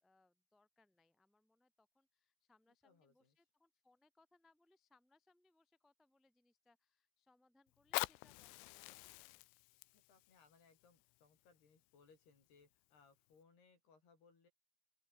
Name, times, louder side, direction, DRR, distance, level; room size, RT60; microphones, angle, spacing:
voice 1, 0.0-9.5, left 2 dB, ahead, 0.8 m, -75 dB
voice 2, 2.8-3.4 9.7-14.5, left 5 dB, 50° left, 8.2 m, -69 dB
Fire, 7.7-12.6 13.3-13.4, left 24 dB, 85° left, 2.9 m, -47 dB
open air
omnidirectional pair, 5.9 m